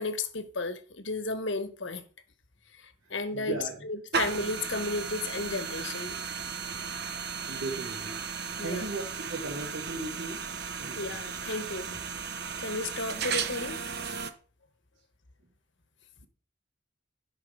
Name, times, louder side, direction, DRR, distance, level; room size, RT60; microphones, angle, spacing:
voice 1, 0.0-2.0 2.8-6.2 8.6-8.8 10.9-12.0 12.6-13.8, left 3 dB, 70° left, 1.4 m, -33 dB
voice 2, 3.3-3.8 5.9-6.0 7.5-8.2 8.6-9.0 9.3-10.5 10.8-11.2, right 2 dB, 90° right, 2.6 m, -36 dB
sound 1, 4.1-9.8, right 7 dB, ahead, 1.1 m, -46 dB
sound 2, 4.1-14.3, right 6 dB, 55° right, 1.0 m, -35 dB
12.5 x 6.0 x 5.4 m
head